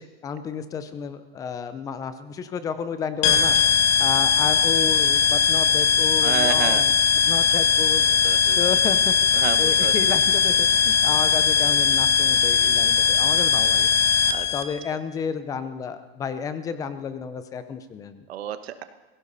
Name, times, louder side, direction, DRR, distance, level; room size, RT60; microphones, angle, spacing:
voice 1, 0.0-3.6 4.0-6.9 7.3-8.1 8.6-13.9 14.5-18.2, left 6 dB, 10° left, 12 dB, 0.5 m, -31 dB
sound 1, 3.2-14.6, left 6 dB, 30° left, 0.9 m, -20 dB
voice 2, 6.2-6.8 8.2-8.6 9.3-9.9 14.3-14.5 18.3-18.8, right 10 dB, 90° right, 10 dB, 1.3 m, -30 dB
20.5 x 16.5 x 4.1 m, 1.2 s
supercardioid pair, 165°, 30 cm